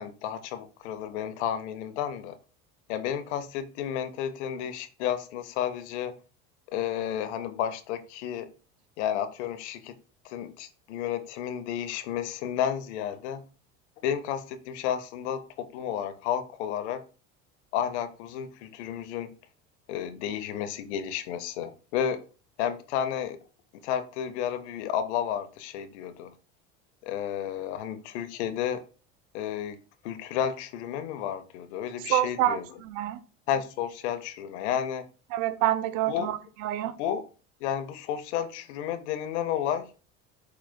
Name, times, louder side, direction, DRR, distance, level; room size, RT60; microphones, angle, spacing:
voice 1, 0.0-2.4 2.9-6.2 6.7-8.5 9.0-10.0 10.2-13.4 14.0-17.0 17.7-19.3 19.9-22.2 22.6-23.4 23.8-26.3 27.0-28.8 29.3-29.8 30.0-32.8 33.5-35.1 36.1-36.3 37.0-37.2 37.6-39.9, left 9 dB, 85° left, 0.7 m, -32 dB
voice 2, 32.1-32.6 32.8-33.2 35.3-36.4 36.6-36.9, right 13 dB, 65° right, 0.5 m, -26 dB
4.9 x 4.7 x 2.2 m
supercardioid pair, 100°, 33 cm